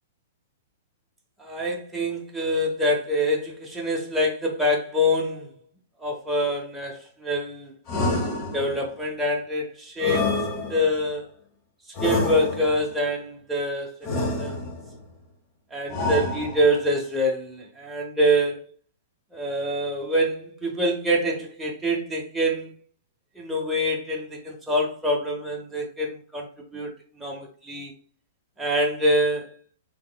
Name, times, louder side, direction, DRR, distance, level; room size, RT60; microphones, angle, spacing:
voice 1, 1.4-5.5 6.0-7.8 8.5-11.2 12.0-14.7 15.7-18.6 19.3-22.7 23.4-26.9 27.1-27.9 28.6-29.5, equal, 5° right, 0.8 m, -25 dB
sound 1, 7.9-8.9 10.0-11.1 11.9-12.9 14.0-14.9 15.9-16.9, left 2 dB, 30° left, 0.9 m, -28 dB
3.5 x 3.0 x 2.2 m
figure-of-eight pair, 110°, 0 cm